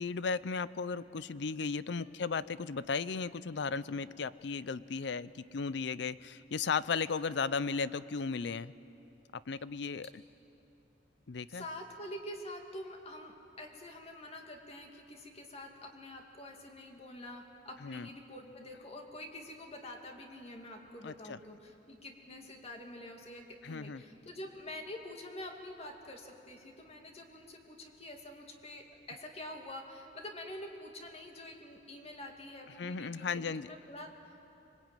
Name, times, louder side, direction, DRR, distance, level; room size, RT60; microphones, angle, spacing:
voice 1, 0.0-8.7 9.5-10.1 11.3-11.6 17.8-18.1 21.0-21.4 23.6-24.0 32.8-33.7, left 5 dB, 70° left, 17 dB, 0.5 m, -35 dB
voice 2, 1.9-2.2 11.5-34.5, left 1 dB, 35° left, 2 dB, 2.4 m, -47 dB
25.5 x 21.5 x 9.1 m, 2.8 s
head